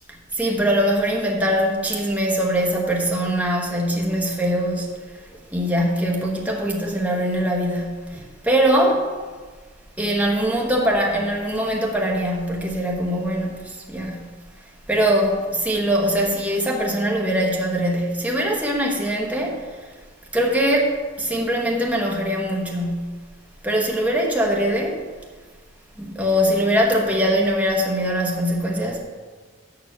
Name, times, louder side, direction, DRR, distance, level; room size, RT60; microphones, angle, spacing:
voice 1, 0.3-5.0 5.5-9.1 10.0-14.3 14.9-19.8 20.3-23.2 23.6-25.0 26.0-29.0, equal, 5° right, -1 dB, 1.1 m, -22 dB
6.8 x 5.9 x 7.0 m, 1.4 s
head